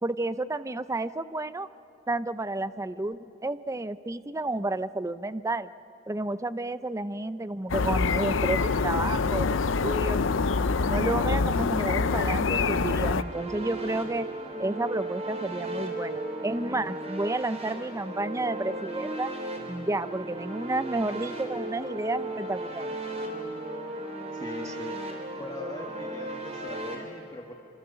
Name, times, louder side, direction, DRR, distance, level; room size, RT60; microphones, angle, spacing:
voice 1, 0.0-1.7 2.1-5.7 6.1-10.2 10.8-14.3 14.6-19.3 19.7-22.9, right 2 dB, 15° right, 14 dB, 0.5 m, -31 dB
sound 1, 7.7-13.2, left 4 dB, 80° left, 0.6 m, -25 dB
sound 2, 12.2-27.0, right 1 dB, 35° right, 3.5 m, -36 dB
voice 2, 24.3-25.0 25.4-27.5, left 1 dB, 20° left, 2 dB, 1.5 m, -41 dB
27.0 x 24.5 x 6.9 m, 2.9 s
head